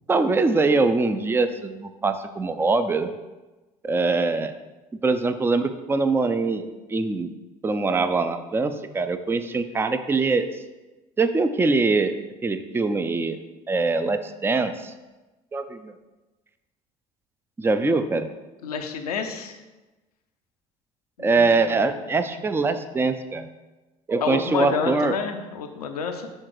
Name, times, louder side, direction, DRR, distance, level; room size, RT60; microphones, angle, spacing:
voice 1, 0.1-3.1 3.8-4.5 5.0-7.3 7.6-10.5 11.2-12.2 12.4-13.4 13.7-14.9 15.5-15.9 17.6-18.3 21.2-23.5 24.1-25.1, right 3 dB, 10° right, 10 dB, 0.4 m, -23 dB
voice 2, 18.6-19.6 21.2-21.7 24.2-26.3, left 6 dB, 80° left, 5 dB, 0.6 m, -29 dB
6.5 x 3.7 x 4.6 m, 1.1 s
figure-of-eight pair, 60°, 19 cm